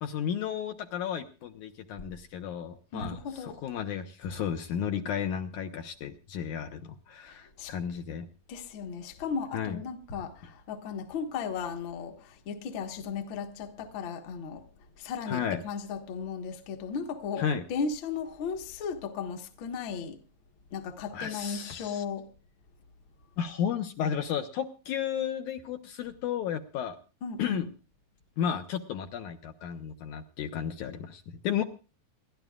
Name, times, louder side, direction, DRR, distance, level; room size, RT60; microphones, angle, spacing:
voice 1, 0.0-8.3 9.5-9.8 15.3-15.6 17.4-17.6 21.1-22.0 23.4-27.0 27.4-27.7 28.4-31.6, left 8 dB, 70° left, 2.2 m, -33 dB
voice 2, 2.9-3.6 7.3-7.7 8.5-14.6 15.0-20.2 20.7-22.3 27.2-27.7, left 6 dB, 50° left, 1.6 m, -36 dB
28.0 x 12.0 x 2.4 m
omnidirectional pair, 3.9 m